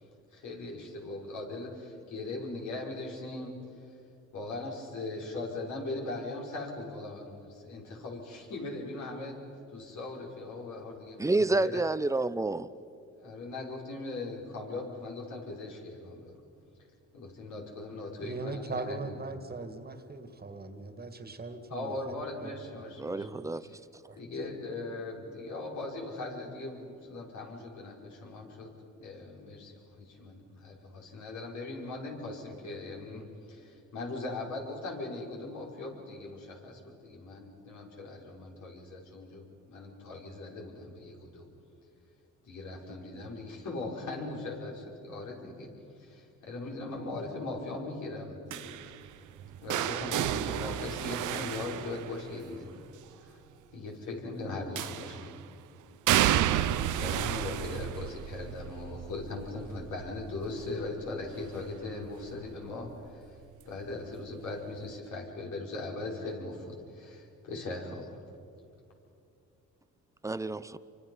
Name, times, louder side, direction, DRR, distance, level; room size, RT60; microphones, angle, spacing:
voice 1, 0.3-3.6 4.3-9.4 9.7-11.8 13.1-16.3 17.1-19.0 21.7-23.3 23.6-23.8 24.2-28.7 29.0-41.5 42.4-45.7 46.0-48.8 49.6-52.7 53.2-53.4 53.7-55.3 57.0-63.4 63.7-68.1, left 2 dB, 70° left, 5.5 m, -39 dB
voice 2, 11.2-12.7 23.0-23.7 70.2-70.8, right 2 dB, 10° right, 0.7 m, -29 dB
voice 3, 18.2-22.8 23.1-23.5 24.1-24.2, right 3 dB, 30° right, 2.1 m, -40 dB
sound 1, 48.5-52.6 54.8-55.4 56.1-61.9 62.2-62.6 63.9-64.0, right 12 dB, 80° right, 0.9 m, -32 dB
28.5 x 24.5 x 5.6 m
cardioid pair, 90°, 30 cm